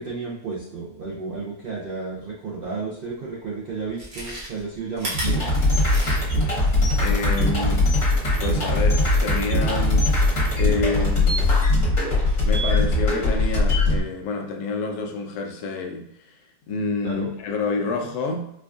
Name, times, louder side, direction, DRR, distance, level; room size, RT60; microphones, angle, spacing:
voice 1, 0.0-5.4 17.0-17.3, right 4 dB, 70° right, -4 dB, 0.5 m, -32 dB
Chewing mastication, 3.8-6.5 6.9-7.0, right 1 dB, 50° right, 1.3 m, -34 dB
sound 1, 5.1-14.0, left 2 dB, 55° left, 1.4 m, -20 dB
voice 2, 7.0-7.9 8.4-12.1 12.4-18.5, left 3 dB, 80° left, 3 dB, 1.1 m, -29 dB
4.5 x 2.5 x 2.3 m, 0.81 s
omnidirectional pair, 1.7 m